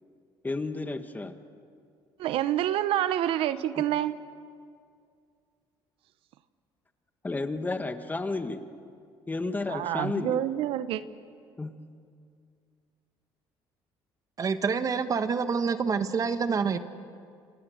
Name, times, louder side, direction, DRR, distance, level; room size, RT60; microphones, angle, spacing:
voice 1, 0.4-1.4 3.8-3.9 7.2-8.6 9.3-10.4 11.6-12.0, left 3 dB, 20° left, 8 dB, 1.6 m, -32 dB
voice 2, 2.2-4.2 9.7-11.0, right 12 dB, 75° right, 13 dB, 0.9 m, -27 dB
voice 3, 14.4-16.8, right 5 dB, 40° right, 10 dB, 1.4 m, -27 dB
29.5 x 26.0 x 6.5 m, 2.3 s
cardioid pair, 100°, 10 cm